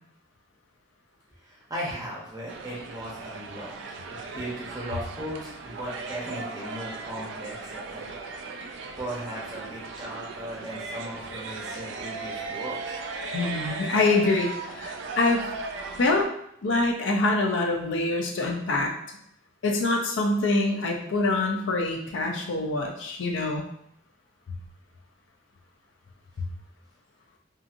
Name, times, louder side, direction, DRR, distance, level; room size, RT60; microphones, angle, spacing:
voice 1, 1.4-3.7 4.1-8.2 9.0-13.0, right 1 dB, 20° right, -5 dB, 0.7 m, -37 dB
sound 1, 2.5-16.3, right 4 dB, 65° right, 0.3 m, -37 dB
voice 2, 13.3-15.4 16.0-16.3 16.6-18.9 19.6-23.6 26.4-26.5, left 2 dB, 65° left, 1 dB, 0.4 m, -25 dB
2.8 x 2.5 x 2.4 m, 0.72 s
head